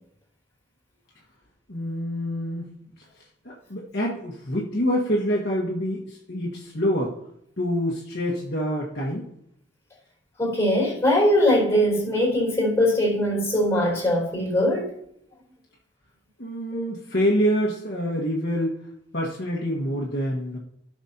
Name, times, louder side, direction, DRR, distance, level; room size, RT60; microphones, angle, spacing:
voice 1, 1.7-2.7 3.4-7.2 7.6-9.3 16.4-18.8 19.1-20.6, equal, 55° left, 1.6 m, -26 dB
voice 2, 10.4-14.9 16.7-16.9, left 1 dB, 15° left, 4.1 m, -21 dB
15.5 x 6.1 x 2.9 m
head